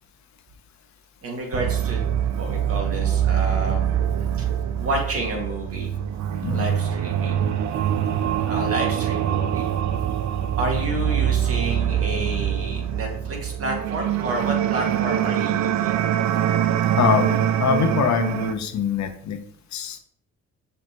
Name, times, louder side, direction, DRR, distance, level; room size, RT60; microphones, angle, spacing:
voice 1, 1.2-2.1 2.4-3.8 4.4-4.5 4.8-5.9 6.5-7.4 8.4-9.7 10.6-15.9, right 2 dB, 50° right, 0 dB, 2.3 m, -30 dB
sound 1, 1.5-18.5, right 10 dB, 65° right, 0.6 m, -24 dB
voice 2, 16.9-19.4 19.7-20.0, left 7 dB, 65° left, 7 dB, 1.0 m, -23 dB
6.6 x 5.6 x 3.1 m, 0.64 s
cardioid pair, 90°, 30 cm